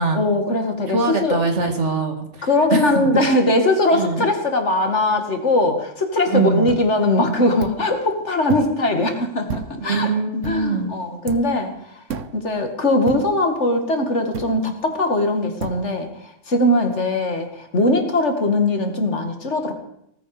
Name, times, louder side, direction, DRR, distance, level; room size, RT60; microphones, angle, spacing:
voice 1, 0.1-1.4 2.4-10.1 10.4-11.7 12.3-19.7, left 2 dB, 70° left, 5 dB, 2.5 m, -20 dB
voice 2, 0.9-2.9 3.9-4.3 6.3-6.7 9.8-10.9, right 3 dB, 70° right, 5 dB, 2.5 m, -22 dB
sound 1, 6.7-6.9 7.6-7.9 8.5-8.8 9.5-9.9 10.4-10.7 11.3-11.6 12.1-12.4 13.1-13.4 14.3-14.7 15.6-15.8, right 6 dB, 90° right, 1.3 m, -31 dB
18.5 x 14.5 x 5.0 m, 0.78 s
omnidirectional pair, 1.2 m